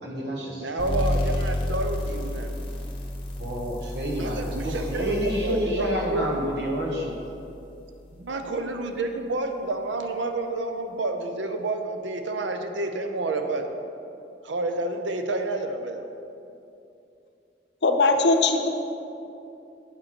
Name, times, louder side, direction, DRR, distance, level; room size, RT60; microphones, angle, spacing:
voice 1, 0.0-0.7 3.4-7.2, equal, 65° right, -1 dB, 1.5 m, -29 dB
voice 2, 0.6-2.5 4.2-6.3 8.2-13.7 14.4-16.1, right 2 dB, 80° right, 6 dB, 0.7 m, -29 dB
sound 1, 0.8-8.1, left 1 dB, 30° left, 1.3 m, -31 dB
voice 3, 17.8-18.7, left 3 dB, 65° left, 6 dB, 0.7 m, -20 dB
8.0 x 6.3 x 6.1 m, 2.7 s
head